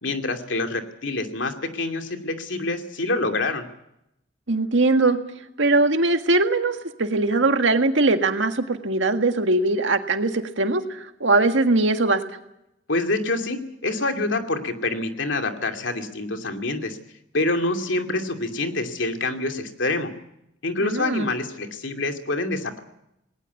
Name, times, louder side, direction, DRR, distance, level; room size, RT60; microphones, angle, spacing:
voice 1, 0.0-3.7 12.9-17.0 17.3-20.1 20.6-22.8, left 2 dB, 80° left, 5 dB, 2.6 m, -26 dB
voice 2, 4.5-5.2 5.6-12.2 20.8-21.3, right 2 dB, 90° right, 6 dB, 1.8 m, -21 dB
20.0 x 19.0 x 8.4 m, 0.81 s
head